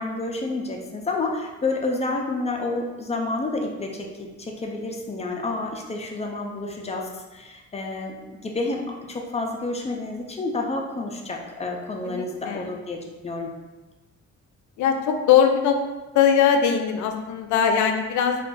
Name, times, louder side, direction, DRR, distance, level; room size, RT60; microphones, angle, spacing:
voice 1, 0.0-8.1 8.4-13.5, left 2 dB, 20° left, 1 dB, 0.4 m, -29 dB
voice 2, 12.0-12.7 14.8-15.8 16.1-18.4, left 8 dB, 75° left, 5 dB, 0.5 m, -20 dB
2.4 x 2.4 x 3.7 m, 1.2 s
cardioid pair, 90°, 30 cm